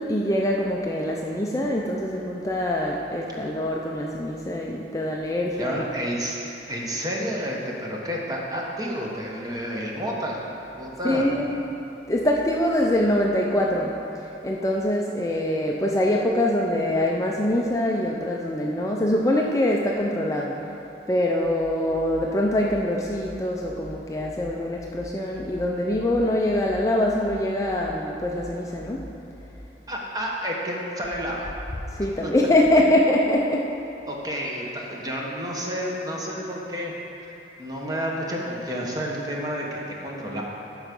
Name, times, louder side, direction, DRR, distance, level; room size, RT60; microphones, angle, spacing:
voice 1, 0.0-5.9 11.0-11.5 12.1-20.5 21.1-29.1 31.9-33.7, left 1 dB, 20° left, -1 dB, 0.4 m, -24 dB
voice 2, 5.6-6.4 6.7-10.4 10.8-11.2 29.9-31.5 32.2-32.3 34.1-36.9 37.2-37.3 37.6-40.4, equal, 20° right, -2 dB, 1.1 m, -30 dB
12.0 x 4.8 x 5.2 m, 2.9 s
head